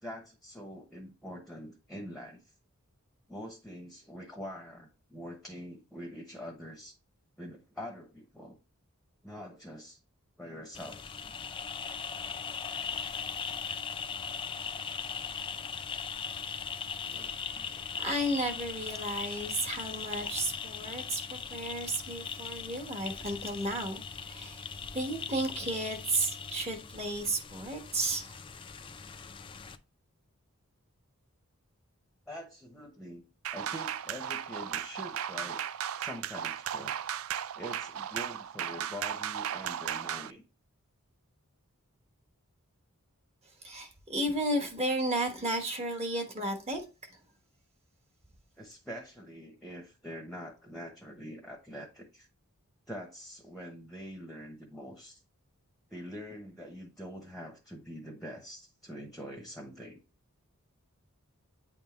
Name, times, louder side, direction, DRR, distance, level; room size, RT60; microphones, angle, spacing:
voice 1, 0.0-2.5 3.3-7.0 7.4-8.6 9.2-10.0 10.4-11.3 17.0-18.2 32.3-33.2 33.5-35.6 36.0-37.0 37.6-40.4 48.6-52.3 52.9-55.2 55.9-60.0, equal, ahead, 0.9 m, -45 dB
sound 1, 10.7-29.8, left 6 dB, 25° left, 0.4 m, -39 dB
voice 2, 17.9-24.7 24.9-28.4 43.6-46.8, right 1 dB, 30° right, 1.1 m, -33 dB
sound 2, 33.4-40.3, right 9 dB, 70° right, 0.4 m, -36 dB
8.9 x 3.6 x 3.0 m
head